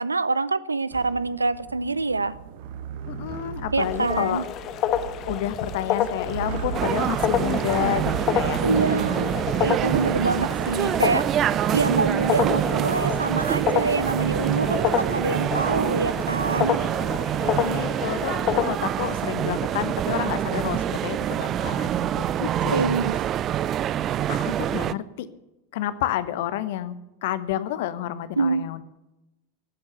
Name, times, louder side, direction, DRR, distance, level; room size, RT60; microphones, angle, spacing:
voice 1, 0.0-2.3 3.7-4.4 8.6-11.3 11.7-16.8 22.7-23.3 28.4-28.7, right 3 dB, 80° right, 18 dB, 0.6 m, -25 dB
sound 1, 0.9-10.5, right 7 dB, 50° right, 1.4 m, -36 dB
voice 2, 3.1-4.4 5.3-8.6 9.0-9.2 17.4-22.8 24.3-25.3 25.7-27.0 27.2-28.8, left 12 dB, 50° left, 14 dB, 1.1 m, -29 dB
sound 2, 3.8-18.7, left 9 dB, 35° left, 1.2 m, -29 dB
sound 3, 6.7-24.9, right 11 dB, 30° right, 0.5 m, -26 dB
17.5 x 8.4 x 8.0 m, 0.98 s
figure-of-eight pair, 90°, 0 cm